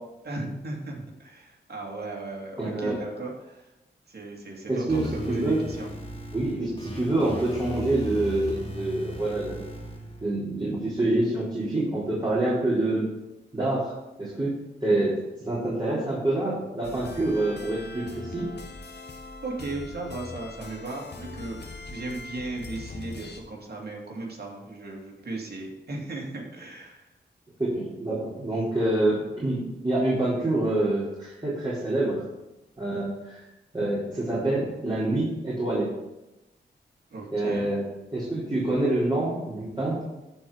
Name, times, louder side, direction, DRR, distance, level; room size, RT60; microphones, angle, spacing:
voice 1, 0.2-3.7 4.1-5.9 19.4-21.6 21.9-27.1 37.1-37.7, right 2 dB, 55° right, -1 dB, 2.7 m, -36 dB
voice 2, 2.6-3.0 4.7-5.6 6.3-9.6 10.2-13.1 13.5-13.9 14.2-14.5 14.8-15.1 15.4-18.5 27.6-32.2 32.8-33.5 33.7-35.9 37.3-37.8 38.1-40.0, right 2 dB, 25° right, -8 dB, 4.0 m, -26 dB
sound 1, 4.9-10.3, equal, 30° left, 2.8 m, -38 dB
sound 2, 16.8-23.4, left 3 dB, 60° left, 1.3 m, -41 dB
14.0 x 4.8 x 5.0 m, 0.96 s
cardioid pair, 50°, 20 cm